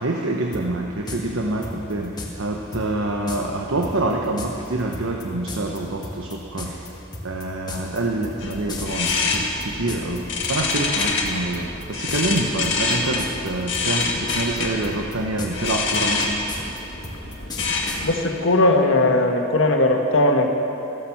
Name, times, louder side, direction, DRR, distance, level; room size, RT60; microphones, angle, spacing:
voice 1, 0.0-6.8 7.2-16.4 17.2-17.4, right 2 dB, 80° right, 1 dB, 1.1 m, -26 dB
sound 1, 0.5-0.6 1.1-1.2 1.6-2.3 2.7-2.9 3.3-3.4 3.8-10.2 10.4-11.3 11.5-11.8 12.1-12.4 12.6-13.5 13.7-14.6 14.8-18.0, left 2 dB, 20° left, 1.8 m, -34 dB
sound 2, 8.4-18.1, left 3 dB, 60° left, 1.9 m, -26 dB
voice 2, 18.0-20.5, left 2 dB, 75° left, 3 dB, 1.5 m, -18 dB
15.0 x 12.0 x 7.2 m, 2.9 s
head